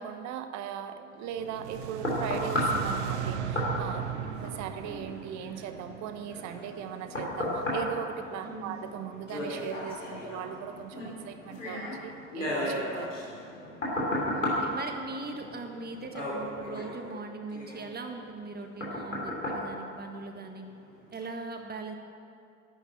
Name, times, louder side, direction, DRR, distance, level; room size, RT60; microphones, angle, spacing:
voice 1, 0.0-4.1 4.4-13.1, right 9 dB, 50° right, 9 dB, 1.1 m, -39 dB
sound 1, 1.4-20.6 21.1-21.3, left 1 dB, 85° left, 2.9 m, -35 dB
sound 2, 1.4-6.6, right 9 dB, 70° right, 0.8 m, -36 dB
voice 2, 8.4-8.8 13.9-20.7 21.1-22.0, right 3 dB, 25° right, 4 dB, 1.6 m, -40 dB
11.5 x 9.2 x 8.9 m, 2.5 s
figure-of-eight pair, 55°, 36 cm